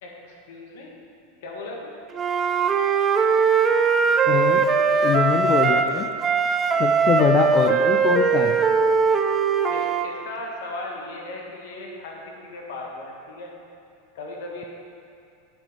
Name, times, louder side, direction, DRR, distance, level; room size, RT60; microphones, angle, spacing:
voice 1, 0.0-0.9 1.4-2.0 4.7-5.0 5.3-6.1 6.7-6.9 9.7-13.5 14.1-14.6, left 2 dB, 70° left, -1 dB, 1.5 m, -37 dB
Wind instrument woodwind instrument, 2.1-5.9 6.2-10.1, right 5 dB, 25° right, 0.4 m, -20 dB
voice 2, 4.3-4.7 5.0-6.1 6.8-8.6, left 9 dB, 40° left, 5 dB, 0.4 m, -23 dB
8.8 x 5.2 x 5.0 m, 2.5 s
hypercardioid pair, 110°, 0 cm